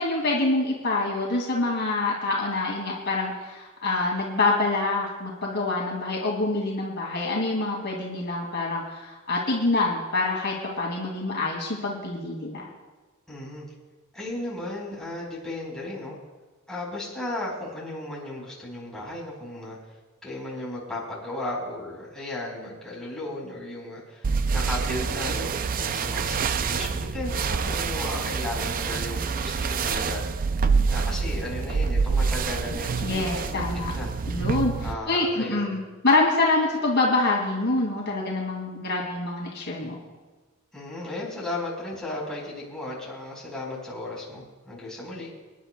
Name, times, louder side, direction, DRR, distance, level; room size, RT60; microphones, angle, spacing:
voice 1, 0.0-12.6 33.0-33.9 34.3-40.0, left 2 dB, 55° left, -2 dB, 2.4 m, -26 dB
voice 2, 13.3-13.6 14.1-16.2 16.7-19.8 20.2-30.2 30.9-33.6 33.9-34.1 34.8-35.8 40.7-45.3, left 1 dB, 5° left, -6 dB, 4.4 m, -35 dB
sound 1, 24.2-34.9, right 5 dB, 40° right, 0.4 m, -26 dB
26.5 x 10.5 x 2.3 m, 1.3 s
head